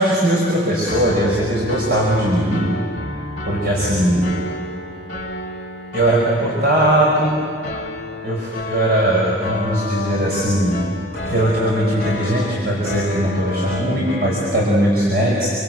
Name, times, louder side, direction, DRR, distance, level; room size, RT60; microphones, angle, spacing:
voice 1, 0.0-2.7 3.5-4.3 5.9-7.3 8.2-10.9 11.2-15.5, right 1 dB, 60° right, -5 dB, 5.5 m, -19 dB
Piano, 0.8-14.6, left 1 dB, 45° left, 4.1 m, -32 dB
Wind instrument woodwind instrument, 9.3-14.5, left 2 dB, 30° right, 2.1 m, -31 dB
27.5 x 25.0 x 7.9 m, 2.4 s
head